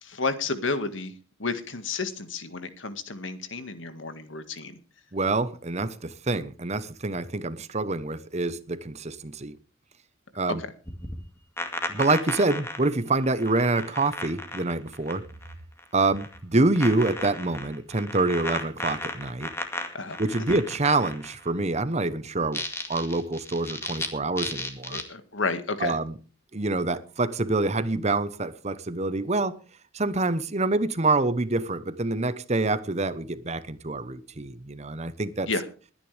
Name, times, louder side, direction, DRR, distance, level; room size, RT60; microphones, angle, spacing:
voice 1, 0.0-1.1 1.4-4.8 10.5-10.6 19.9-20.2 24.9-26.0 35.5-35.6, left 3 dB, 70° left, 1.8 m, -31 dB
voice 2, 5.1-9.6 10.3-10.6 11.9-15.2 15.9-19.5 20.2-22.6 22.9-25.0 25.8-26.1 26.5-29.6 29.9-35.5, right 2 dB, 35° right, 1.0 m, -26 dB
static speaker crackling, 10.8-15.5 15.8-16.4 16.8-21.5 22.4-24.1 24.4-25.0, left 2 dB, 15° left, 2.1 m, -34 dB
21.5 x 10.0 x 3.4 m
head